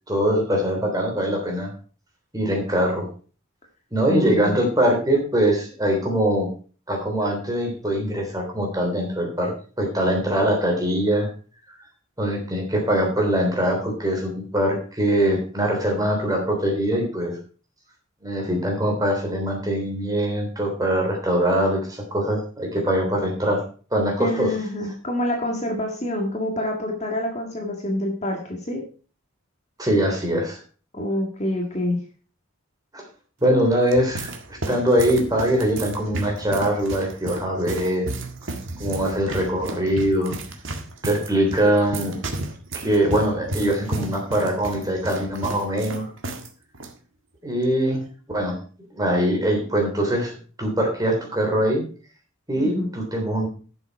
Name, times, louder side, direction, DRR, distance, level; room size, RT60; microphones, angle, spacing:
voice 1, 0.1-1.7 2.3-3.1 3.9-6.5 6.9-11.3 12.2-17.3 18.2-23.6 23.9-24.5 29.8-30.6 32.9-33.0 33.4-38.1 38.8-40.4 41.0-42.2 42.7-46.1 47.4-48.0 48.3-48.6 48.9-50.3 50.6-51.9 52.5-53.5, right 1 dB, 15° right, 1 dB, 3.2 m, -22 dB
voice 2, 4.1-4.6 24.2-28.8 30.9-32.0 52.6-52.9, left 1 dB, 30° left, 1 dB, 1.9 m, -27 dB
sound 1, 33.6-46.5 46.7-46.9 47.6-47.9, right 2 dB, 60° right, 1.7 m, -33 dB
11.5 x 7.0 x 4.7 m, 0.39 s
head